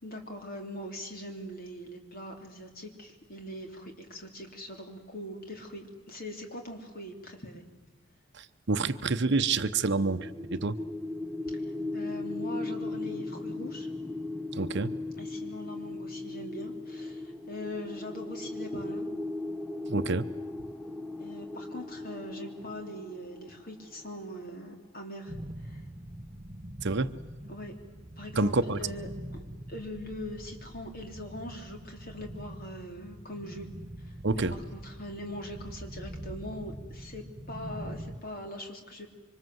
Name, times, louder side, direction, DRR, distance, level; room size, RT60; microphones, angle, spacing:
voice 1, 0.0-7.6 11.5-13.9 15.2-19.1 21.2-25.9 27.5-27.7 28.2-29.1 29.7-33.7 34.0-39.1, left 1 dB, 45° left, 3 dB, 3.6 m, -42 dB
voice 2, 8.3-10.8 14.5-14.9 19.9-20.3 26.8-27.1 28.4-28.8 34.2-34.5, right 3 dB, 55° right, 11 dB, 0.8 m, -28 dB
sound 1, 9.4-24.4, left 2 dB, ahead, 0.8 m, -38 dB
sound 2, 25.3-38.2, right 1 dB, 30° right, 1.0 m, -44 dB
26.0 x 25.0 x 7.9 m, 1.3 s
head